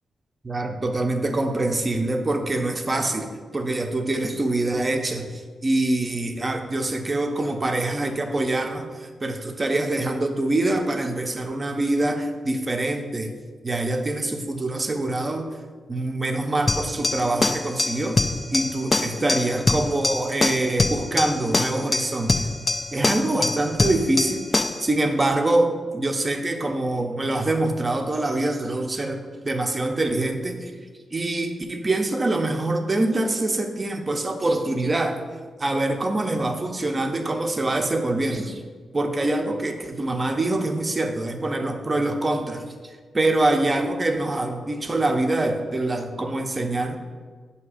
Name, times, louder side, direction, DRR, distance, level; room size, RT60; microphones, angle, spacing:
voice 1, 0.4-13.4 13.6-15.5 15.9-22.5 22.9-24.4 24.8-29.2 29.4-30.7 31.1-35.2 35.6-38.6 38.9-42.7 43.1-47.0, right 2 dB, 25° right, 5 dB, 0.6 m, -25 dB
sound 1, 16.7-24.9, left 2 dB, 25° left, 0.3 m, -24 dB
7.0 x 2.8 x 4.8 m, 1.5 s
cardioid pair, 100°, 0 cm